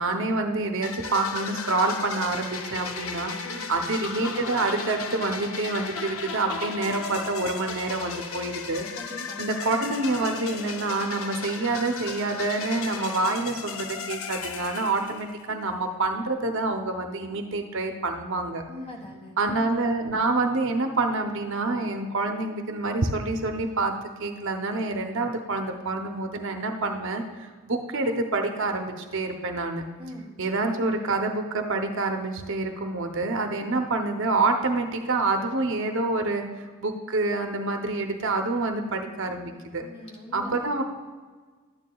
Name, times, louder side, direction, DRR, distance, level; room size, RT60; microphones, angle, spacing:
voice 1, 0.0-3.3 3.7-8.9 9.4-18.6 19.4-23.9 24.2-29.8 30.4-39.8 40.3-40.8, right 2 dB, 60° right, 4 dB, 0.7 m, -27 dB
sound 1, 0.8-15.6, left 5 dB, 70° left, 0.6 m, -36 dB
voice 2, 3.4-3.7 8.9-9.4 18.7-19.4 30.0-30.4 39.8-40.6, left 1 dB, 30° left, 0 dB, 1.5 m, -41 dB
12.0 x 9.3 x 2.3 m, 1.4 s
head